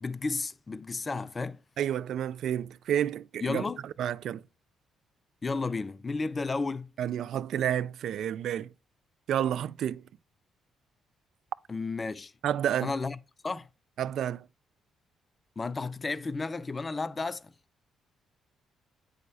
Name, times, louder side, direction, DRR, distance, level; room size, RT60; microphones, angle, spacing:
voice 1, 0.0-1.6 3.4-3.8 5.4-6.9 11.7-12.3 12.8-13.2 13.4-13.7 15.6-17.5, left 3 dB, 30° left, 0.5 m, -32 dB
voice 2, 1.8-3.6 4.0-4.4 7.0-8.7 9.3-10.0 12.4-12.9 14.0-14.5, right 10 dB, 70° right, 0.4 m, -30 dB
9.5 x 6.4 x 2.7 m
cardioid pair, 90°, 0 cm